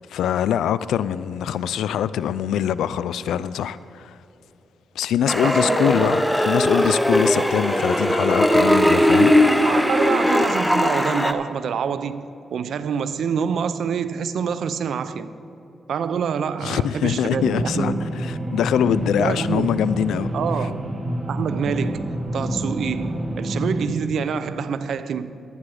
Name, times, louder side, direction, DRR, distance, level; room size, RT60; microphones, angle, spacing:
voice 1, 0.1-4.2 5.0-9.3 16.6-20.3, left 9 dB, 90° left, 0.3 m, -23 dB
sound 1, 5.3-11.3, equal, 5° left, 0.7 m, -19 dB
voice 2, 5.4-6.1 7.3-7.5 9.6-15.3 15.9-18.1 19.2-19.8 20.3-20.8 21.3-25.4, right 7 dB, 75° right, 0.5 m, -26 dB
sound 2, 17.3-23.9, right 1 dB, 50° right, 2.1 m, -27 dB
11.5 x 9.7 x 4.8 m
cardioid pair, 65°, 0 cm